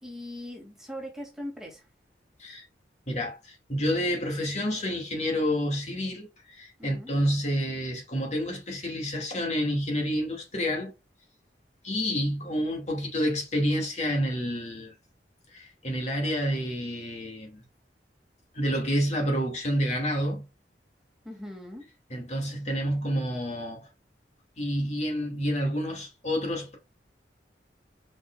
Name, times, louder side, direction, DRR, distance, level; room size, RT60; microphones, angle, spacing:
voice 1, 0.0-1.9 6.8-7.1 21.2-21.9, equal, 5° right, 2.5 m, -40 dB
voice 2, 3.1-10.9 11.8-14.9 15.5-17.6 18.5-20.4 22.1-23.9 24.6-26.8, equal, 40° left, 2.3 m, -29 dB
7.3 x 5.7 x 2.5 m
head